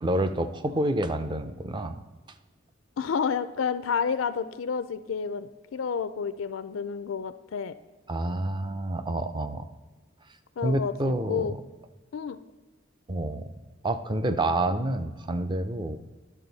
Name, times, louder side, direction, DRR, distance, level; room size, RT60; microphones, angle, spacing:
voice 1, 0.0-2.0 8.1-9.7 10.6-11.5 13.1-13.5 13.8-16.0, right 1 dB, 25° right, 10 dB, 0.5 m, -28 dB
voice 2, 3.0-7.7 10.6-11.5 12.1-12.4, left 6 dB, 85° left, 13 dB, 0.4 m, -30 dB
11.0 x 6.3 x 4.0 m, 1.3 s
head